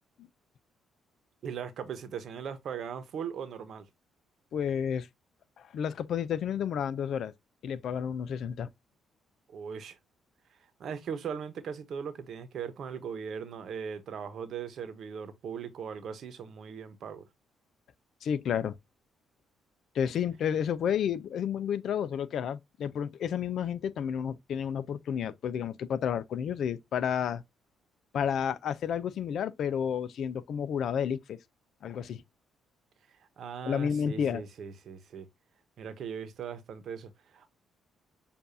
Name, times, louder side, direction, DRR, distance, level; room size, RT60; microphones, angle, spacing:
voice 1, 1.4-3.8 9.5-10.0 10.8-17.3 33.4-35.3 35.8-37.5, right 7 dB, 65° right, 1.0 m, -39 dB
voice 2, 4.5-5.1 5.6-7.3 7.6-8.7 18.2-18.8 19.9-27.4 28.1-31.4 31.8-32.2 33.7-34.4, left 8 dB, 70° left, 0.5 m, -31 dB
6.8 x 2.6 x 2.6 m
cardioid pair, 90°, 0 cm